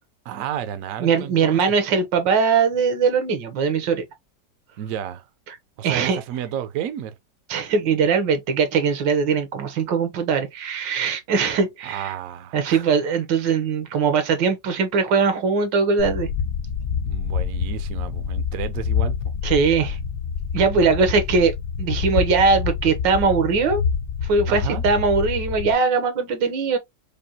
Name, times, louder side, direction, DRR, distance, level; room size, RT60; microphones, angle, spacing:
voice 1, 0.3-1.6 1.9-2.0 4.8-5.2 5.8-7.1 11.8-12.9 17.1-19.2 24.5-24.8, right 10 dB, 70° right, 0.8 m, -31 dB
voice 2, 1.0-4.0 5.5-5.6 5.8-6.2 7.5-12.1 12.5-16.3 19.4-20.0 20.5-21.5 21.8-23.8 24.2-26.8, right 5 dB, 85° right, 1.6 m, -21 dB
sound 1, 16.0-25.7, left 6 dB, 85° left, 0.6 m, -27 dB
5.1 x 2.2 x 2.8 m
omnidirectional pair, 1.9 m